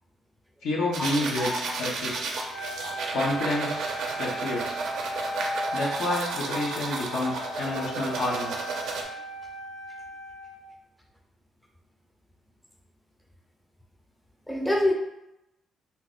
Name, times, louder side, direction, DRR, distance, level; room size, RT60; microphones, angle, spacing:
voice 1, 0.6-2.3 3.1-4.8 5.7-8.6, left 2 dB, 85° left, -4 dB, 0.9 m, -29 dB
sound 1, 0.9-9.0, right 4 dB, 75° right, 0.5 m, -33 dB
voice 2, 1.4-1.8 2.4-2.5 14.5-14.9, left 1 dB, ahead, 1 dB, 0.5 m, -26 dB
Wind instrument woodwind instrument, 2.5-10.7, right 1 dB, 40° left, 0.9 m, -37 dB
2.8 x 2.0 x 3.8 m, 0.87 s
cardioid pair, 90°, 0 cm